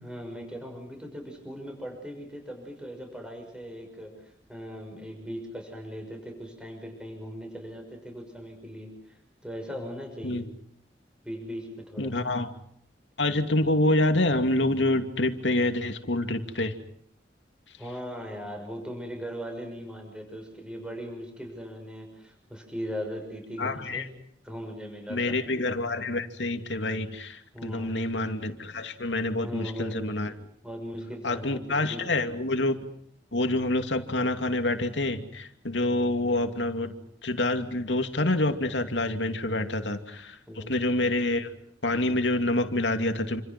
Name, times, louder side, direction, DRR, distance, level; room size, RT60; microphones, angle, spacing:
voice 1, 0.0-10.5 11.2-12.1 17.8-24.1 24.4-25.4 27.5-28.0 29.4-30.0 30.6-32.3 40.5-40.7, equal, 5° right, 3 dB, 6.3 m, -39 dB
voice 2, 12.0-12.5 13.2-16.7 23.6-24.0 25.1-30.3 31.2-32.8 33.3-36.9 37.2-41.5 41.8-43.4, left 2 dB, 85° left, 6 dB, 2.6 m, -27 dB
29.0 x 26.5 x 6.1 m, 0.66 s
head